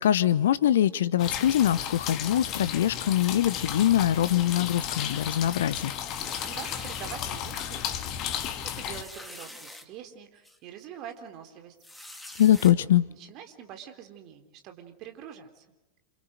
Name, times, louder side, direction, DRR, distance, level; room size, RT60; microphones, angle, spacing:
voice 1, 0.0-5.9 12.4-13.1, left 11 dB, 60° left, 18 dB, 0.9 m, -23 dB
sound 1, 1.2-9.0, left 9 dB, 35° left, 2.1 m, -34 dB
sound 2, 6.1-7.2 7.8-8.0 8.2-8.3 8.9-9.8 10.4-10.6 11.8-12.7, left 1 dB, 5° left, 2.7 m, -45 dB
voice 2, 6.5-8.2 8.6-11.8 12.7-15.7, right 9 dB, 40° right, 6 dB, 3.7 m, -45 dB
29.0 x 28.0 x 6.6 m, 1.0 s
figure-of-eight pair, 90°, 0 cm